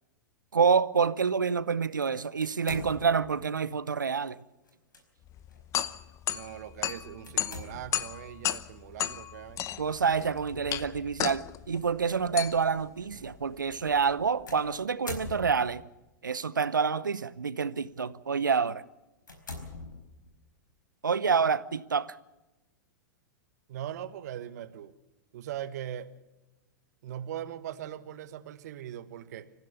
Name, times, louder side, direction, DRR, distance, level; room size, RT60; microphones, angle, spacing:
voice 1, 0.5-4.4 9.8-15.9 16.2-18.8 21.0-22.2, right 5 dB, 85° right, 0.8 m, -27 dB
sound 1, 2.4-3.4 4.7-5.0 5.5-5.6 7.2-8.1 10.2-10.5 11.3-11.4 14.5-15.9 16.8-17.2 17.8-18.0 18.5-18.6 19.2-20.4, left 3 dB, 85° left, 4.7 m, -43 dB
sound 2, 5.3-14.4, left 12 dB, 30° left, 0.8 m, -35 dB
voice 2, 6.3-9.7 23.7-24.9 25.3-26.1 27.0-29.5, right 11 dB, 60° right, 1.4 m, -40 dB
25.0 x 15.0 x 7.1 m
figure-of-eight pair, 100°, 10 cm